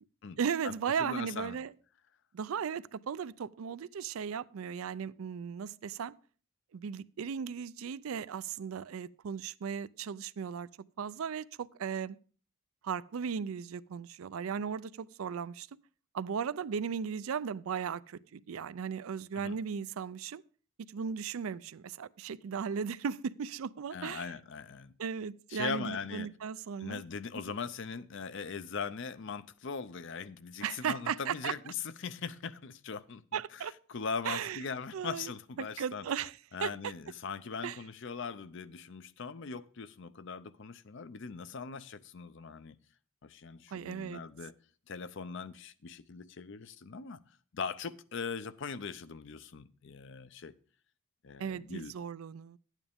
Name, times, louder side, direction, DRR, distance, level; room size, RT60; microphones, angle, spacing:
voice 1, 0.4-1.7 2.3-6.1 6.7-10.7 11.0-12.2 12.8-15.7 16.1-20.4 20.9-24.3 25.0-27.0 27.5-27.6 30.6-31.5 33.3-33.7 34.2-34.6 34.9-35.3 35.6-36.9 37.6-37.8 43.7-44.2 51.4-52.6, right 7 dB, 80° right, 0.4 m, -36 dB
voice 2, 1.0-1.6 19.3-19.6 23.9-24.9 25.5-26.3 26.8-33.4 33.9-36.1 36.5-42.8 43.2-44.5 44.9-47.2 47.5-50.5 51.2-51.9, left 5 dB, 60° left, 0.6 m, -40 dB
12.0 x 9.1 x 3.5 m
head